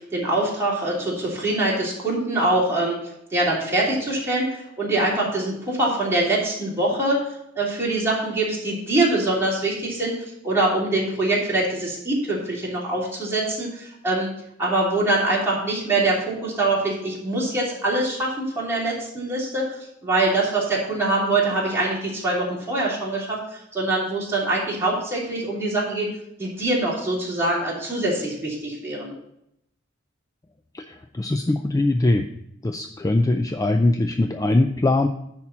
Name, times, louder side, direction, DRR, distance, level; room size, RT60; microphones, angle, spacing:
voice 1, 0.0-3.0 3.3-7.2 7.5-10.1 10.4-14.3 14.6-19.7 20.0-26.1 26.4-29.1, right 2 dB, 15° right, -6 dB, 3.1 m, -24 dB
voice 2, 30.7-32.3 32.6-35.1, left 2 dB, 20° left, 6 dB, 0.4 m, -21 dB
10.5 x 4.3 x 5.9 m, 0.76 s
head